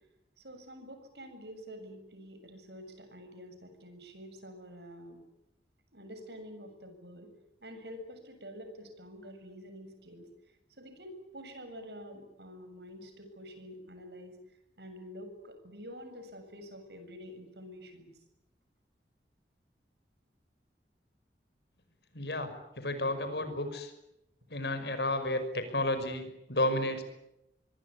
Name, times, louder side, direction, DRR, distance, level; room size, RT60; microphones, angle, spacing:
voice 1, 0.4-5.2 5.9-7.3 7.6-10.3 10.8-14.4 14.8-18.1, equal, 70° right, 8 dB, 7.4 m, -47 dB
voice 2, 22.1-23.9 24.5-27.0, left 1 dB, 70° left, 9 dB, 5.8 m, -32 dB
25.5 x 23.0 x 9.8 m, 0.86 s
head